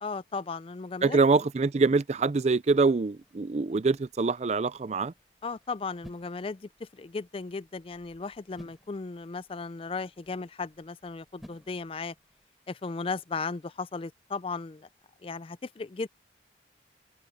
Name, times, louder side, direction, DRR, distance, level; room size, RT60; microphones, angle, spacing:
voice 1, 0.0-1.2 5.4-12.1 12.7-14.9 15.2-16.1, left 4 dB, 30° left, 0.4 m, -36 dB
voice 2, 1.0-5.1, right 4 dB, 35° right, 0.4 m, -24 dB
sound 1, 3.2-12.5, equal, ahead, 6.1 m, -57 dB
head